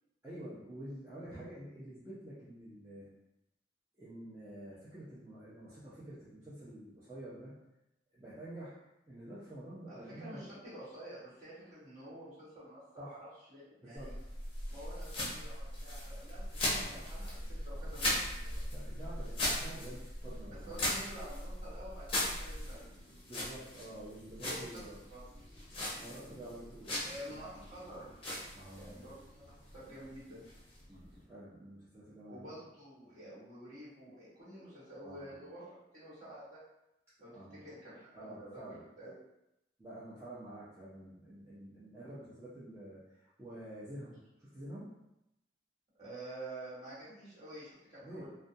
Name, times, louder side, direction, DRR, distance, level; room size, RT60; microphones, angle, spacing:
voice 1, 0.2-3.1 4.0-7.5 8.1-8.7 9.1-10.5 13.0-13.2 13.8-14.1 16.7-17.1 18.7-20.9 23.2-25.0 26.0-27.4 28.5-29.1 30.9-32.6 35.0-35.4 37.3-37.6 38.1-38.8 39.8-44.9 48.0-48.3, right 1 dB, 15° right, -12 dB, 0.5 m, -48 dB
voice 2, 9.9-13.2 13.5-14.1 14.7-18.7 20.7-23.1 24.5-24.8 25.1-25.2 27.0-28.1 28.7-30.5 32.3-36.6 37.2-39.1 46.0-48.3, right 1 dB, 40° right, -11 dB, 1.4 m, -49 dB
sound 1, 14.0-31.2, left 1 dB, 30° left, 0.6 m, -39 dB
2.5 x 2.2 x 2.6 m, 0.87 s
head